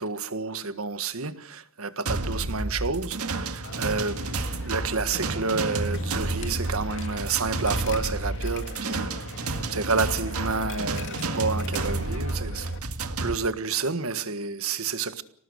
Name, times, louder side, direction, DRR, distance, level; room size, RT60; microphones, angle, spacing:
voice 1, 0.0-4.3 4.6-9.3 9.7-12.7 13.2-15.2, right 4 dB, 70° right, 1.6 m, -29 dB
sound 1, 2.1-13.4, right 2 dB, 90° right, 2.0 m, -30 dB
Coin (dropping), 3.6-12.8, left 4 dB, 60° left, 2.5 m, -42 dB
26.5 x 18.5 x 6.5 m
head